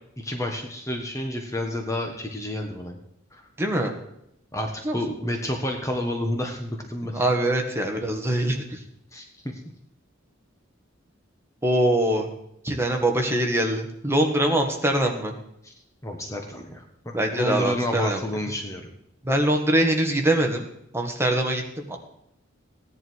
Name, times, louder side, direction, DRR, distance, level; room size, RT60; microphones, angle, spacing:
voice 1, 0.2-3.0 3.3-3.5 4.5-7.2 9.1-9.6 15.6-15.7 16.0-18.9, left 1 dB, 15° left, 3 dB, 1.4 m, -30 dB
voice 2, 3.6-3.9 4.8-5.0 7.1-8.8 11.6-12.3 12.6-15.3 17.1-18.2 19.2-20.6 20.9-22.0, right 1 dB, 15° right, 2 dB, 1.8 m, -23 dB
16.5 x 10.5 x 4.7 m, 0.78 s
head